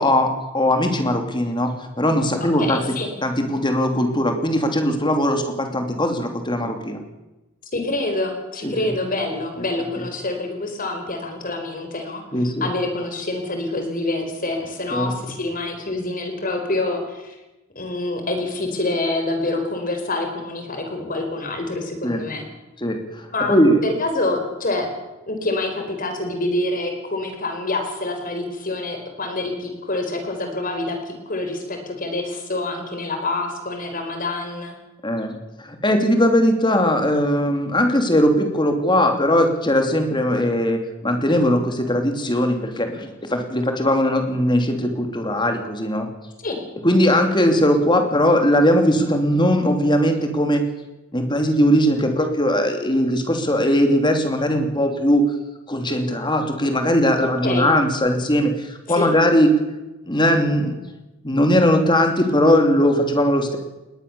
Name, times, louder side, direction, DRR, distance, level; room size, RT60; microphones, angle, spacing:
voice 1, 0.0-1.7 2.0-2.8 3.2-7.0 8.6-8.7 12.3-12.7 14.9-15.1 22.0-22.2 22.8-23.8 35.0-46.1 46.8-50.6 51.1-55.2 55.7-59.5 60.1-60.7 61.2-63.6, equal, 20° left, 5 dB, 3.0 m, -19 dB
voice 2, 2.4-3.1 7.7-12.2 12.6-17.4 17.7-22.5 23.3-24.9 25.3-34.7 46.4-46.6 57.2-57.7 59.0-59.1, left 2 dB, 40° left, 5 dB, 4.4 m, -26 dB
21.0 x 19.0 x 7.0 m, 1.0 s
head